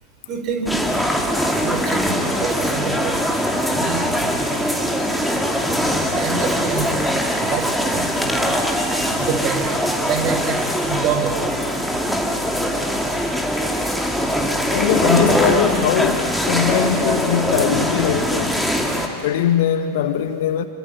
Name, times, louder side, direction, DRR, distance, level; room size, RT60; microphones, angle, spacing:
voice 1, 0.3-0.7 1.6-3.2 3.6-4.9 5.9-7.1 7.4-8.4 9.2-9.8 10.0-11.5, right 6 dB, 35° right, 4.5 m, -27 dB
sound 1, 0.7-19.1, equal, ahead, 2.6 m, -21 dB
voice 2, 14.7-18.7 19.2-20.6, left 10 dB, 55° left, 1.3 m, -21 dB
25.5 x 24.5 x 9.0 m
figure-of-eight pair, 90°, 0 cm